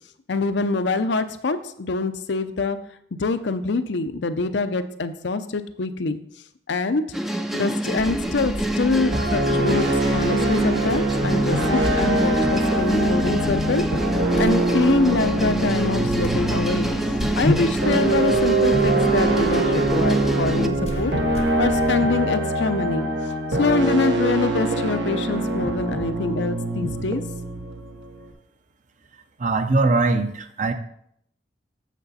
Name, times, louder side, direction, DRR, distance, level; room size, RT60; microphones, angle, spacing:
voice 1, 0.3-2.8 3.2-6.2 6.7-7.0 7.5-13.8 14.3-16.9 17.4-23.1 23.5-27.2, left 3 dB, 75° left, 10 dB, 0.6 m, -25 dB
sound 1, 7.1-20.7, right 1 dB, ahead, 0.4 m, -26 dB
sound 2, 8.0-21.9, left 1 dB, 35° left, 0.6 m, -33 dB
sound 3, 9.1-28.3, right 2 dB, 80° right, 1.0 m, -24 dB
voice 2, 29.4-30.7, right 3 dB, 40° right, 8 dB, 0.6 m, -21 dB
8.3 x 6.6 x 4.1 m, 0.71 s
head